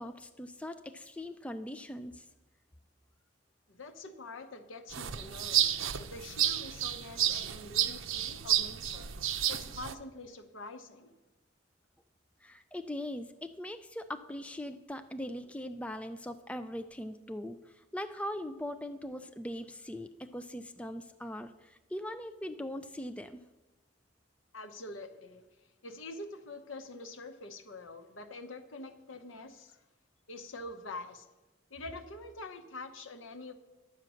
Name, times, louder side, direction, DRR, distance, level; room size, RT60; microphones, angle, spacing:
voice 1, 0.0-2.2 12.4-23.4, left 1 dB, 5° left, 8 dB, 0.3 m, -41 dB
voice 2, 3.7-9.1 9.5-11.1 24.5-25.4 25.8-29.8 30.3-31.3 31.7-33.5, left 2 dB, 75° left, 8 dB, 1.0 m, -45 dB
sound 1, 4.9-9.9, right 11 dB, 80° right, 0.6 m, -31 dB
10.5 x 7.5 x 6.3 m, 1.1 s
head